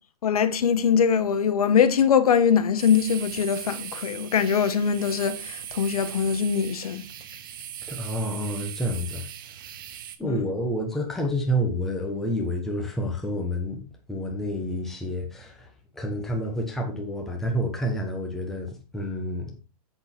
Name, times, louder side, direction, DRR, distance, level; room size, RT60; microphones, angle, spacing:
voice 1, 0.2-7.1 10.2-10.4, left 7 dB, 75° left, 1.3 m, -22 dB
sound 1, 2.8-10.2, right 10 dB, 35° right, 0.9 m, -39 dB
voice 2, 7.9-9.3 10.2-19.5, equal, ahead, 1.1 m, -29 dB
8.0 x 6.4 x 4.5 m
hypercardioid pair, 180°, 19 cm